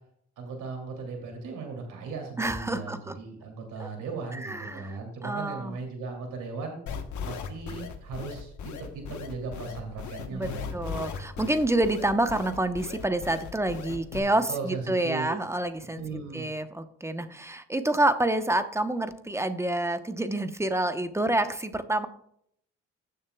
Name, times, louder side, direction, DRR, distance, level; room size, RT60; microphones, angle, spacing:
voice 1, 0.4-6.8 7.2-11.0 14.5-15.4 15.9-16.5, right 4 dB, 85° right, 1 dB, 2.8 m, -37 dB
voice 2, 2.4-3.1 3.8-3.9 4.3-5.8 10.3-16.0 16.3-22.1, right 1 dB, 10° right, 9 dB, 0.9 m, -28 dB
sound 1, 6.9-14.2, left 6 dB, 75° left, 1.2 m, -37 dB
16.0 x 6.7 x 2.3 m, 0.68 s
cardioid pair, 90°, 30 cm